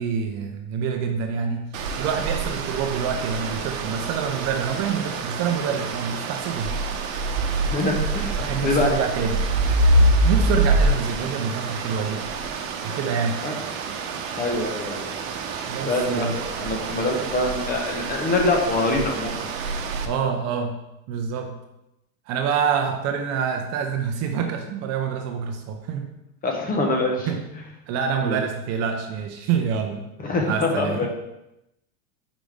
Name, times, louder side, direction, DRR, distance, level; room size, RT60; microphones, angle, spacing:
voice 1, 0.0-6.7 8.4-9.4 10.2-12.2 12.8-13.4 15.7-16.4 20.0-20.8 21.1-21.5 22.3-26.1 27.3-27.4 27.9-30.1 30.5-31.1, right 6 dB, 40° right, 5 dB, 0.6 m, -26 dB
sound 1, 1.7-20.1, right 2 dB, 80° right, 0.9 m, -26 dB
voice 2, 7.6-8.9 13.4-13.6 14.4-15.2 15.8-16.3 16.6-19.4 26.4-27.3 28.2-28.4 30.2-31.1, left 2 dB, 20° left, 2 dB, 1.0 m, -24 dB
5.2 x 5.1 x 3.6 m, 0.88 s
supercardioid pair, 135°, 40 cm